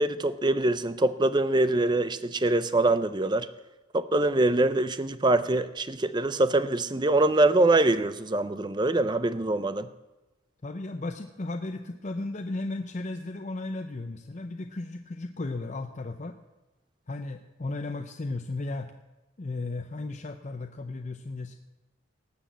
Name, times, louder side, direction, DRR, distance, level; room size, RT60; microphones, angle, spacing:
voice 1, 0.0-3.5 3.9-9.9, right 2 dB, 20° right, 13 dB, 0.5 m, -24 dB
voice 2, 10.6-16.4 17.1-18.9 19.4-21.6, left 2 dB, 35° left, 6 dB, 0.6 m, -35 dB
18.5 x 6.2 x 8.1 m, 1.1 s
head